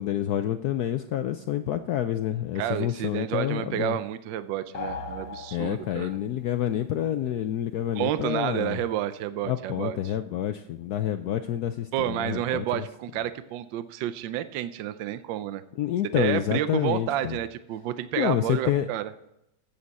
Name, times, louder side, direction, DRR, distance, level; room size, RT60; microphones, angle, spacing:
voice 1, 0.0-4.0 5.5-8.8 9.5-12.8 15.8-17.4 18.2-18.9, left 11 dB, 80° left, 9 dB, 0.9 m, -28 dB
voice 2, 2.5-6.2 7.9-10.1 11.9-15.6 16.2-19.1, right 12 dB, 75° right, 13 dB, 1.2 m, -30 dB
sound 1, 4.7-6.3, left 4 dB, 50° left, 1.7 m, -37 dB
14.0 x 8.7 x 4.1 m, 0.84 s
omnidirectional pair, 2.2 m